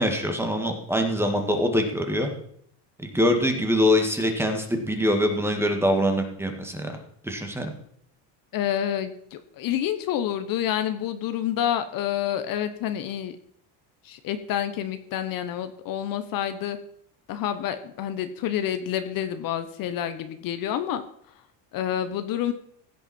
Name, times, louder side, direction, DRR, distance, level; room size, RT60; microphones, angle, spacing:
voice 1, 0.0-2.3 3.0-7.0 7.2-7.7, equal, 5° right, 4 dB, 1.8 m, -24 dB
voice 2, 8.5-13.4 14.0-16.8 17.3-21.0 21.7-22.5, left 10 dB, 50° left, 10 dB, 1.0 m, -28 dB
16.0 x 9.2 x 4.3 m, 0.65 s
cardioid pair, 145°, 43 cm